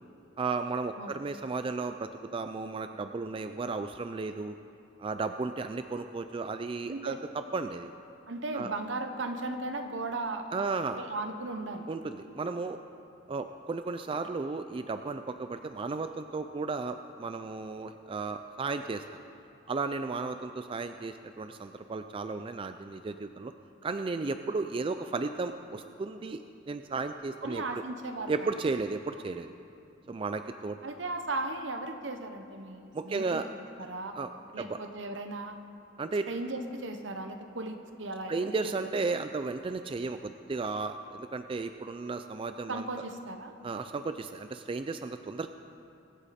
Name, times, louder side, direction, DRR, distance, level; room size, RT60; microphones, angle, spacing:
voice 1, 0.4-4.6 5.0-7.9 8.5-8.7 10.5-11.0 11.9-12.8 13.3-19.0 19.7-23.5 23.8-26.4 26.7-27.8 28.3-29.5 30.1-30.8 32.9-33.5 34.2-34.3 34.6-34.8 36.0-36.3 38.3-42.9 43.6-45.5, right 4 dB, 30° right, 8 dB, 0.3 m, -34 dB
voice 2, 8.3-10.6 11.0-11.9 27.4-28.5 30.8-33.4 33.8-34.1 34.5-35.6 36.3-38.7 42.7-43.5, right 2 dB, 70° right, 7 dB, 1.0 m, -36 dB
23.0 x 8.3 x 4.3 m, 2.7 s
head